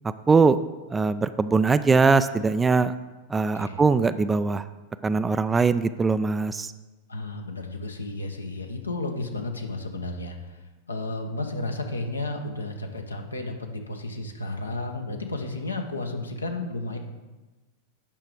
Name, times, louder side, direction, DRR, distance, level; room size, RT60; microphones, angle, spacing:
voice 1, 0.3-0.6 0.9-2.9 3.3-4.7 5.0-6.7, right 4 dB, 15° right, 13 dB, 0.3 m, -21 dB
voice 2, 7.1-17.0, left 2 dB, 80° left, 3 dB, 1.1 m, -33 dB
9.0 x 5.9 x 5.0 m, 1.2 s
figure-of-eight pair, 90°, 0 cm